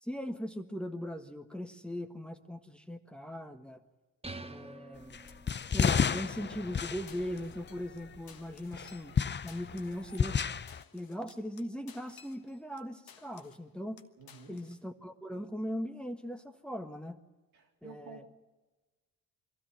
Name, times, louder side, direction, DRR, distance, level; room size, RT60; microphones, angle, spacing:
voice 1, 0.0-3.8 4.4-5.2 5.7-9.1 9.4-10.4 10.9-14.0 14.5-17.2 17.8-18.3, equal, 5° left, 5 dB, 1.5 m, -39 dB
sound 1, 4.2-5.9, right 3 dB, 15° right, 1.0 m, -47 dB
sound 2, 5.1-8.2 8.7-10.8, left 6 dB, 30° left, 0.6 m, -31 dB
sound 3, 5.3-6.5 6.8-6.9 7.1-8.0 8.3-12.8 13.1-13.7 14.0-14.8, left 7 dB, 70° left, 1.4 m, -57 dB
voice 2, 14.2-14.7 17.5-18.3, right 5 dB, 85° right, -1 dB, 3.4 m, -51 dB
23.0 x 13.5 x 9.2 m, 1.2 s
supercardioid pair, 60°, 37 cm